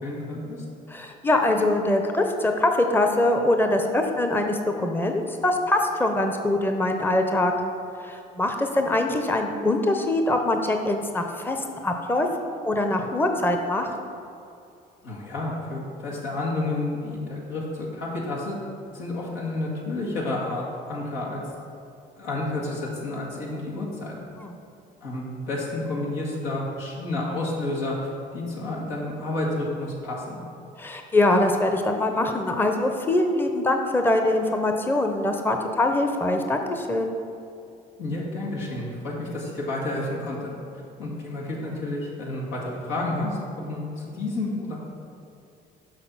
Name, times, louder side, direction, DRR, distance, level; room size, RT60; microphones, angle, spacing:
voice 1, 0.0-0.6 15.0-18.6 18.9-21.4 22.2-24.2 25.0-30.4 38.0-40.5 41.0-44.8, left 2 dB, 90° left, -5 dB, 1.9 m, -30 dB
voice 2, 0.9-7.5 8.0-11.6 11.8-13.9 24.4-24.5 30.8-37.2, left 2 dB, 10° left, 4 dB, 0.7 m, -23 dB
6.6 x 5.4 x 5.7 m, 2.6 s
supercardioid pair, 80°, 19 cm